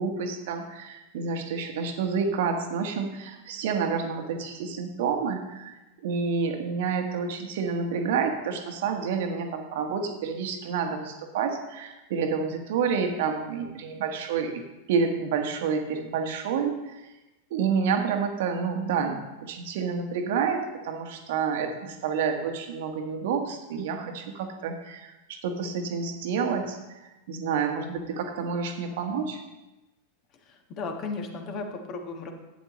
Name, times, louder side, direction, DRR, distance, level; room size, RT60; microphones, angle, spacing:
voice 1, 0.0-5.7 6.0-17.0 17.5-26.8 27.3-29.4, right 5 dB, 55° right, 5 dB, 1.3 m, -29 dB
voice 2, 30.5-32.3, left 3 dB, 35° left, 4 dB, 1.5 m, -35 dB
11.5 x 9.3 x 3.1 m, 1.0 s
figure-of-eight pair, 90°, 0 cm